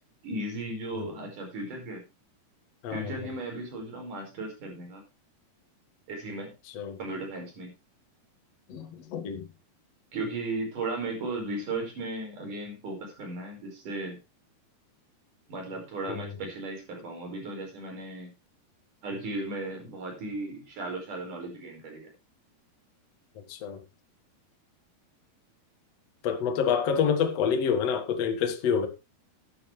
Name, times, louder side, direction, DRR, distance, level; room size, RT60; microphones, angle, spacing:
voice 1, 0.2-2.0 2.9-5.0 6.1-6.5 7.0-7.7 10.1-14.2 15.5-18.3 19.0-22.1, right 2 dB, 50° right, 6.2 m, -36 dB
voice 2, 2.8-3.3 6.7-7.0 8.7-9.4 16.1-16.3 23.4-23.8 26.2-28.9, left 7 dB, 50° left, 2.2 m, -28 dB
14.0 x 11.0 x 3.3 m
omnidirectional pair, 4.8 m